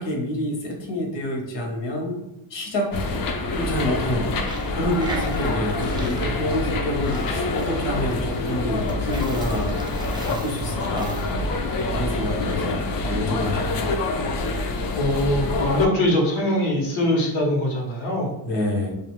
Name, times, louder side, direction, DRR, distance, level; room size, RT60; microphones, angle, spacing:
voice 1, 0.0-2.2 2.5-2.9 3.5-4.3 4.7-11.2 11.9-13.9 18.4-18.9, left 1 dB, 70° left, 1 dB, 0.9 m, -28 dB
sound 1, 2.9-15.9, left 2 dB, 50° left, 0.5 m, -26 dB
Coin (dropping), 4.4-12.6, right 2 dB, 10° right, 0.4 m, -40 dB
voice 2, 15.0-18.3, left 1 dB, 90° left, -1 dB, 1.0 m, -22 dB
2.3 x 2.3 x 3.0 m, 0.86 s
cardioid pair, 110°, 45 cm